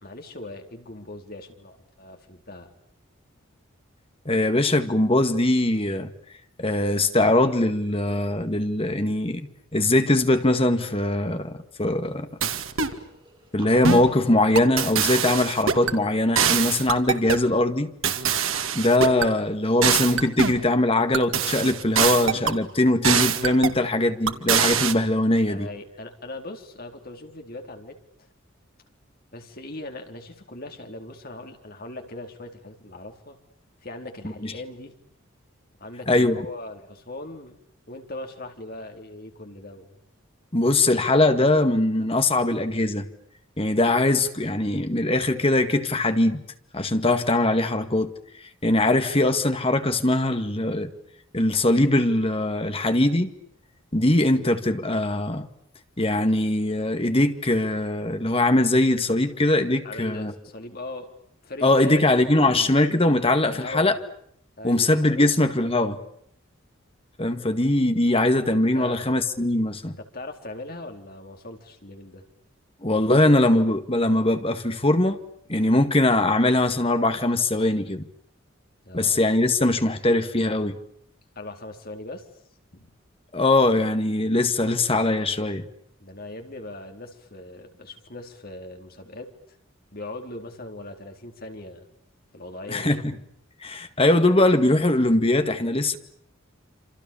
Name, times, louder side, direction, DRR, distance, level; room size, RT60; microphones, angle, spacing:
voice 1, 0.0-2.7 25.5-28.0 29.3-33.4 33.8-35.0 35.8-37.6 37.9-39.9 59.8-61.1 61.4-62.8 63.4-64.0 64.6-65.4 68.5-69.2 70.0-72.2 78.8-79.2 81.4-82.3 82.7-82.9 86.0-89.3 89.9-91.9 92.3-92.9, left 2 dB, 45° left, 4.2 m, -39 dB
voice 2, 4.3-6.1 6.6-12.3 13.5-17.9 18.7-25.7 34.4-34.5 36.1-36.5 40.5-43.1 43.6-46.4 46.7-48.1 48.6-50.9 51.3-53.3 53.9-55.5 56.0-60.3 61.6-64.0 64.6-66.0 67.2-70.0 72.8-75.2 75.5-78.0 78.9-80.8 83.3-85.6 92.7-93.1 93.6-96.0, left 1 dB, 25° left, 2.0 m, -21 dB
sound 1, 12.4-13.0 13.8-14.1 14.6-16.0 16.4-17.5 18.0-19.3 19.8-20.6 21.1-22.6 23.0-23.8 24.3-24.9, right 7 dB, 80° right, 2.3 m, -24 dB
sound 2, 12.8-18.3, right 2 dB, 25° right, 7.1 m, -49 dB
27.5 x 27.5 x 7.2 m
head